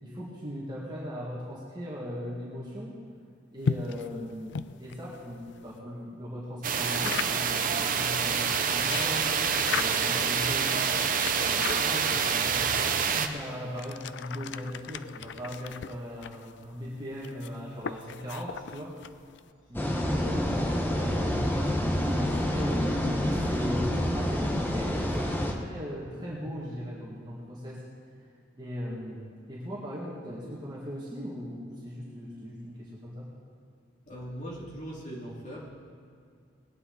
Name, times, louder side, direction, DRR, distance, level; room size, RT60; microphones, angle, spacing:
voice 1, 0.0-3.0 3.5-9.4 9.7-12.6 13.1-19.0 19.7-21.6 22.1-27.8 28.6-33.3, equal, 25° right, -7 dB, 2.1 m, -39 dB
sound 1, 3.6-5.8 6.8-7.6 8.5-10.2 10.9-12.3 13.1-19.5, left 6 dB, 65° left, 0.4 m, -37 dB
sound 2, 6.6-13.3, right 6 dB, 45° right, 0.7 m, -27 dB
sound 3, 19.7-25.5, equal, 10° left, 1.1 m, -28 dB
voice 2, 34.1-35.7, equal, 40° left, -4 dB, 3.0 m, -40 dB
20.0 x 9.7 x 4.1 m, 2.3 s
head